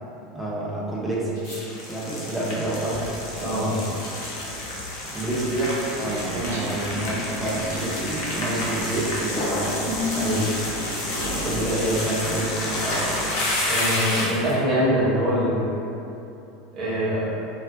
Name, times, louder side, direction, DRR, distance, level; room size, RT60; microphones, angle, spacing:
voice 1, 0.3-1.4 1.8-3.1 5.1-9.6 11.3-13.4, right 1 dB, 10° right, -6 dB, 0.5 m, -28 dB
sound 1, 1.3-4.3 5.4-6.3 6.7-7.3 7.8-8.4 8.8-9.4 9.9-13.1 14.3-14.5, equal, 85° left, 1.0 m, -43 dB
sound 2, 1.5-14.5, left 1 dB, 50° left, 0.4 m, -29 dB
voice 2, 3.4-3.8 10.1-10.4 13.6-15.8 16.7-17.3, equal, 40° right, -9 dB, 0.9 m, -23 dB
sound 3, 6.0-11.5, left 1 dB, 70° right, 0.4 m, -34 dB
2.4 x 2.0 x 2.5 m, 2.7 s
figure-of-eight pair, 75°, 0 cm